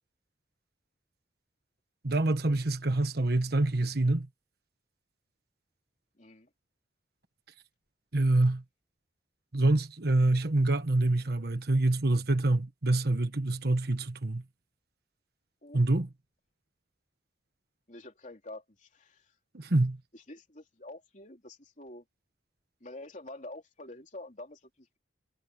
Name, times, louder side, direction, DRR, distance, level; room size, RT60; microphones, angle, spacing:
voice 1, 2.0-4.3 8.1-8.6 9.5-14.4 15.7-16.1 19.5-20.0, right 2 dB, 60° right, 1.4 m, -26 dB
voice 2, 6.2-6.5 15.6-15.8 17.9-19.3 20.1-22.0 22.8-25.0, left 2 dB, 45° left, 3.3 m, -47 dB
head